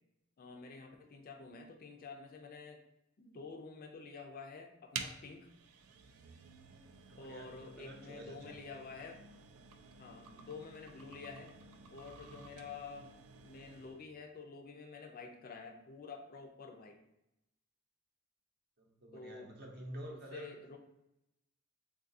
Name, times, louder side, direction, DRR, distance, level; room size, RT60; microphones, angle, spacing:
voice 1, 0.4-2.8 3.2-5.5 7.2-9.2 10.0-11.5 11.9-17.0 19.1-19.5 20.1-20.8, left 4 dB, 45° left, 4 dB, 0.4 m, -49 dB
sound 1, 4.9-14.1, right 6 dB, 90° right, 0.3 m, -51 dB
voice 2, 7.1-8.6 18.8-20.6, right 1 dB, 50° right, 0 dB, 0.7 m, -49 dB
3.7 x 2.3 x 2.6 m, 0.87 s
head